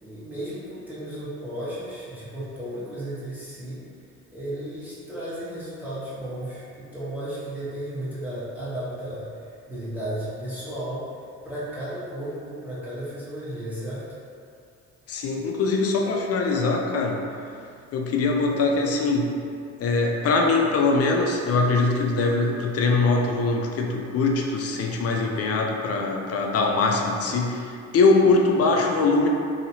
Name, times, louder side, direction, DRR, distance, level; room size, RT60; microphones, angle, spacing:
voice 1, 0.0-3.8 4.3-9.3 9.7-11.0 11.4-14.0, right 1 dB, 5° right, -11 dB, 1.1 m, -34 dB
voice 2, 15.1-17.2 17.9-19.3 19.8-29.3, left 3 dB, 55° left, 1 dB, 0.5 m, -22 dB
2.8 x 2.8 x 2.8 m, 2.4 s
cardioid pair, 90°, 30 cm